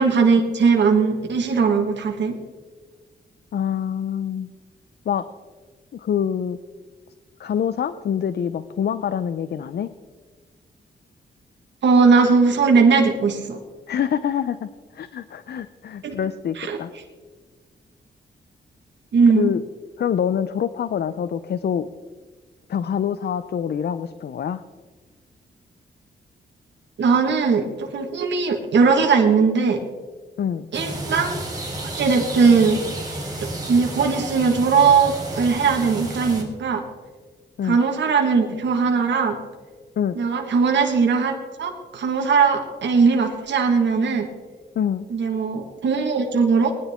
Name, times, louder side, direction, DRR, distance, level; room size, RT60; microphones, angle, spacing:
voice 1, 0.0-2.3 11.8-13.6 16.0-16.1 16.6-16.8 19.1-19.5 27.0-29.8 30.7-31.4 32.0-32.8 33.4-36.8 37.6-39.4 40.1-41.3 41.6-44.3 45.1-46.7, right 5 dB, 75° right, 2 dB, 1.6 m, -19 dB
voice 2, 3.5-4.5 5.1-5.2 5.9-6.6 7.4-9.9 13.9-16.9 19.3-19.6 20.0-21.9 22.7-24.6 30.4-30.7 37.6-37.8 40.0-40.2 44.8-45.1, left 8 dB, 60° left, 13 dB, 0.5 m, -25 dB
sound 1, 30.7-36.4, right 2 dB, 20° right, 3.2 m, -31 dB
19.5 x 10.5 x 3.6 m, 1.4 s
cardioid pair, 90°, 19 cm